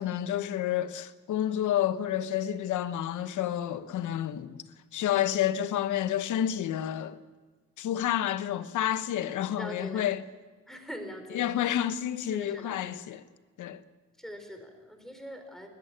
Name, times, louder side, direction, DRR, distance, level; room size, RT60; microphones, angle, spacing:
voice 1, 0.0-4.6 4.9-7.2 7.8-10.2 11.3-13.2 13.6-13.8, left 11 dB, 75° left, 1.0 m, -29 dB
voice 2, 9.5-10.1 10.7-11.4 12.3-12.8 14.2-15.7, equal, ahead, 4.3 m, -42 dB
21.0 x 13.5 x 9.9 m
cardioid pair, 90°, 30 cm